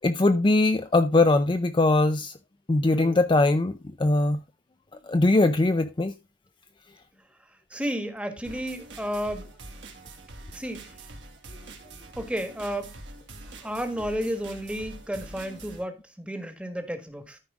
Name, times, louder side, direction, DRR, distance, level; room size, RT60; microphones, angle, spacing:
voice 1, 0.0-2.3 2.7-3.7 4.0-4.4 5.1-6.1, left 2 dB, 25° left, 0.5 m, -21 dB
voice 2, 2.8-3.2 7.7-9.5 10.5-10.8 12.2-12.9 13.6-17.4, equal, 5° right, 1.4 m, -32 dB
sound 1, 8.4-15.8, right 2 dB, 70° right, 2.4 m, -45 dB
13.5 x 5.0 x 3.5 m
head